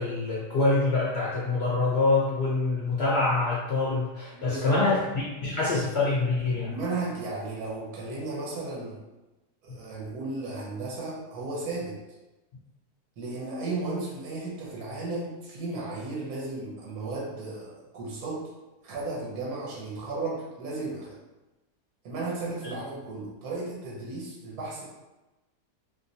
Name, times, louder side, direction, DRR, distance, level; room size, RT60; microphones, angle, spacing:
voice 1, 0.0-6.7, left 3 dB, 70° left, -6 dB, 0.6 m, -25 dB
voice 2, 4.3-4.9 6.7-9.0 9.6-12.0 13.2-18.5 18.8-21.2 22.0-24.8, right 3 dB, 70° right, -4 dB, 1.2 m, -34 dB
3.2 x 2.9 x 2.7 m, 1.1 s
omnidirectional pair, 1.7 m